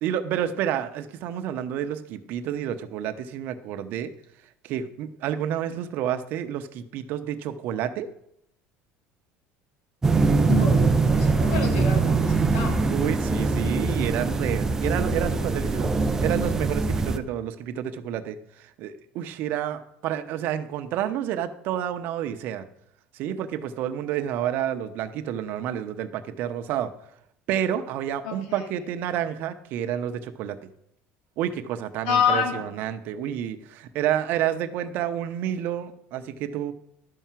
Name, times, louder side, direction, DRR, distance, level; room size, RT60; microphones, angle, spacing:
voice 1, 0.0-4.1 4.6-8.1 12.8-22.6 23.1-26.9 27.5-30.7 31.4-36.7, right 10 dB, 55° right, 9 dB, 0.9 m, -29 dB
sound 1, 10.0-17.2, right 4 dB, 10° right, 0.6 m, -22 dB
voice 2, 10.5-12.8 28.2-28.7 32.1-32.6, left 6 dB, 80° left, 3 dB, 2.9 m, -27 dB
12.0 x 5.7 x 7.4 m, 0.74 s
cardioid pair, 160°, 4 cm